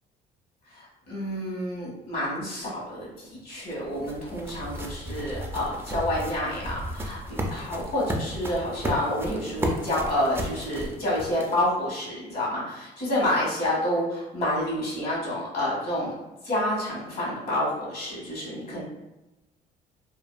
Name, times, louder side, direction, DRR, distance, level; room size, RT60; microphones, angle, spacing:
voice 1, 0.7-16.1 16.4-18.8, left 1 dB, 60° left, -5 dB, 1.4 m, -29 dB
sound 1, 3.2-11.8, right 1 dB, 15° right, 0.3 m, -34 dB
2.7 x 2.4 x 2.3 m, 1.0 s
cardioid pair, 110°, 17 cm